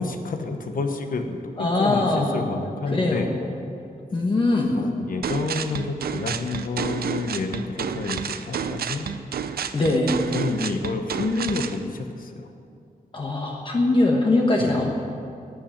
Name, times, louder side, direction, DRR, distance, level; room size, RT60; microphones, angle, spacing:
voice 1, 0.0-3.3 4.8-9.2 10.3-12.5 14.6-14.9, left 3 dB, 65° left, 6 dB, 1.1 m, -29 dB
voice 2, 1.6-2.5 2.9-3.5 4.1-4.8 9.7-10.2 13.1-14.9, left 2 dB, 35° left, -1 dB, 1.3 m, -22 dB
sound 1, 5.2-11.8, right 7 dB, 90° right, 0.6 m, -30 dB
12.5 x 8.8 x 9.0 m, 2.5 s
wide cardioid pair, 160°, 15 cm